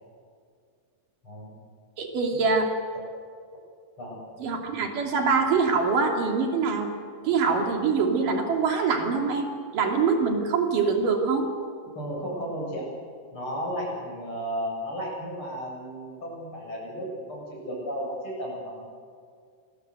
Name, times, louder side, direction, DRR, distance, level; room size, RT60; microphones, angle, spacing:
voice 1, 1.2-1.6 2.3-2.4 4.0-4.2 11.9-12.8 13.3-18.9, equal, 40° left, -2 dB, 8.4 m, -34 dB
voice 2, 2.0-2.7 4.4-6.9 7.2-11.5, right 4 dB, 85° right, 2 dB, 4.4 m, -24 dB
27.0 x 21.0 x 8.0 m, 2.2 s
omnidirectional pair, 3.7 m